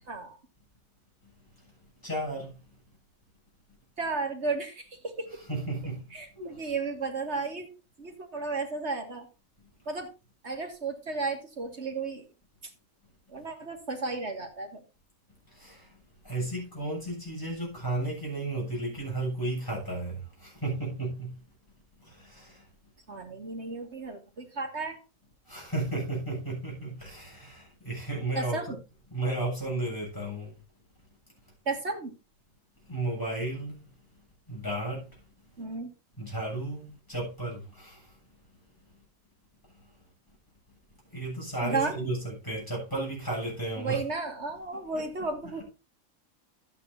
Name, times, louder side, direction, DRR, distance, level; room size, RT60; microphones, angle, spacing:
voice 1, 0.1-0.4 4.0-5.3 6.1-7.7 8.0-9.3 9.9-10.1 10.4-12.3 13.3-14.8 23.1-25.0 28.4-28.8 31.7-32.1 35.6-35.9 41.6-41.9 43.8-45.6, right 3 dB, 50° right, 2.5 m, -33 dB
voice 2, 1.2-1.7 2.0-2.8 5.5-6.7 15.5-21.5 22.0-22.7 25.4-28.8 29.1-30.6 32.8-33.9 34.5-35.5 36.2-38.2 39.7-39.9 41.0-44.0 44.7-45.3, right 2 dB, 15° left, 7.8 m, -34 dB
13.0 x 9.4 x 2.8 m
omnidirectional pair, 1.4 m